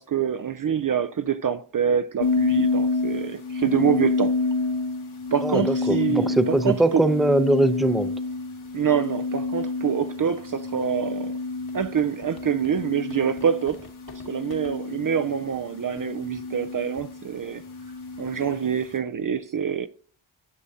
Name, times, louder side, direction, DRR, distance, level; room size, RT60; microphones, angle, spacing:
voice 1, 0.0-4.3 5.3-7.0 8.7-11.4 11.7-13.9 14.3-17.6 18.2-19.9, right 8 dB, 45° right, 0.5 m, -26 dB
sound 1, 2.2-19.0, left 3 dB, 75° left, 1.8 m, -29 dB
voice 2, 5.4-8.1, right 1 dB, ahead, 0.6 m, -21 dB
sound 2, 11.7-14.8 15.5-15.6 16.0-16.1 16.3-16.6 17.0-17.2, left 4 dB, 50° left, 1.4 m, -47 dB
9.9 x 6.2 x 2.8 m
cardioid pair, 55°, 48 cm